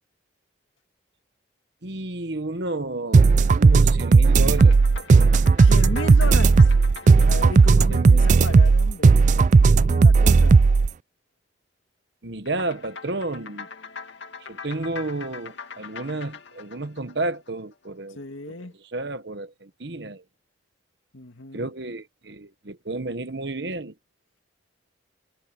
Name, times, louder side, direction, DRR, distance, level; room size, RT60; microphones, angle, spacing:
voice 1, 1.8-5.3 7.9-8.5 12.2-13.7 14.5-20.2 21.5-23.9, right 2 dB, 60° right, 1.2 m, -32 dB
sound 1, 3.1-10.9, right 4 dB, 40° right, 0.3 m, -15 dB
sound 2, 4.5-9.1 12.5-17.9, left 5 dB, 65° left, 2.1 m, -42 dB
voice 2, 5.6-6.7 7.2-10.6 18.2-18.7 21.1-21.7, left 2 dB, 85° left, 2.1 m, -35 dB
head